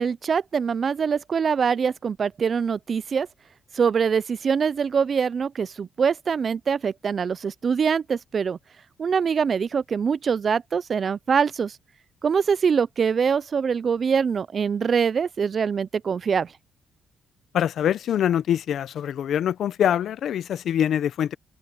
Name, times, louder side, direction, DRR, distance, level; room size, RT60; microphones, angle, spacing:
voice 1, 0.0-3.3 3.8-8.6 9.0-11.7 12.2-16.5, right 6 dB, 45° right, 0.4 m, -24 dB
voice 2, 17.5-21.3, left 10 dB, 70° left, 0.6 m, -24 dB
open air
cardioid pair, 90°, 0 cm